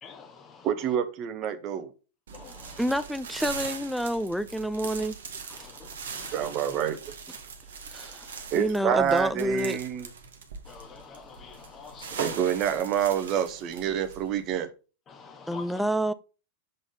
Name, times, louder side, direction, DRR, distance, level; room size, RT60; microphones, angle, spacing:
voice 1, 0.0-0.7 2.3-2.8 5.5-5.9 6.1-6.5 10.7-12.2 15.1-15.8, left 6 dB, 25° left, 1.0 m, -47 dB
voice 2, 0.6-1.9 6.3-7.2 8.5-10.1 12.2-14.7, right 9 dB, 35° right, 0.9 m, -27 dB
sound 1, 2.3-14.6, right 5 dB, 65° right, 1.0 m, -41 dB
voice 3, 2.8-5.2 5.6-5.7 6.2-6.3 7.9-9.8 15.5-16.1, equal, ahead, 0.4 m, -28 dB
6.6 x 3.8 x 3.8 m
figure-of-eight pair, 90°, 0 cm